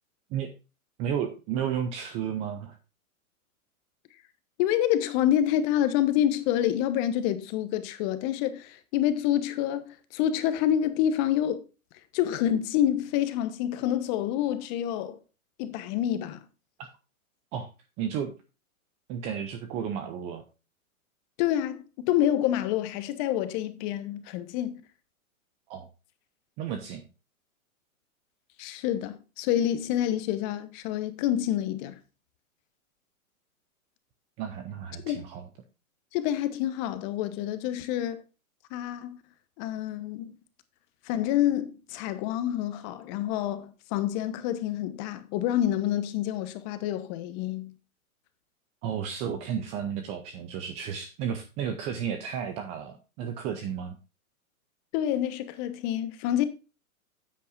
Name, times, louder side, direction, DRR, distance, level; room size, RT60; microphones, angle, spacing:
voice 1, 1.0-2.8 17.5-17.7 18.0-18.3 19.1-20.4 25.7-25.9 26.6-27.1 34.4-35.4 48.8-54.0, right 8 dB, 15° right, 0.4 m, -33 dB
voice 2, 4.6-9.9 10.1-11.6 12.1-15.2 15.6-16.4 21.4-24.8 28.6-32.0 35.0-35.2 36.1-38.2 38.7-39.2 39.6-40.3 41.0-47.7 54.9-56.5, left 11 dB, 30° left, 1.1 m, -27 dB
9.9 x 8.5 x 2.5 m
hypercardioid pair, 135°, 43 cm